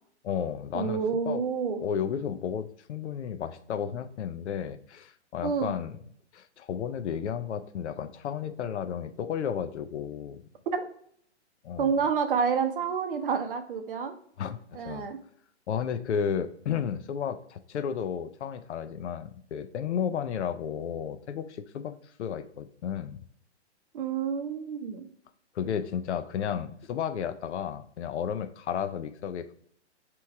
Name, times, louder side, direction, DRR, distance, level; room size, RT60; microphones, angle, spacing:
voice 1, 0.2-1.0 1.3-1.4 1.8-5.9 6.3-10.4 11.6-11.9 14.4-15.1 15.7-23.2 25.5-29.5, left 8 dB, 75° left, 11 dB, 0.6 m, -33 dB
voice 2, 0.7-1.8 5.4-5.7 10.7-10.8 11.8-14.1 14.7-15.2 23.9-25.0, right 6 dB, 50° right, 7 dB, 0.7 m, -28 dB
3.4 x 3.0 x 4.6 m, 0.63 s
hypercardioid pair, 155°, 35 cm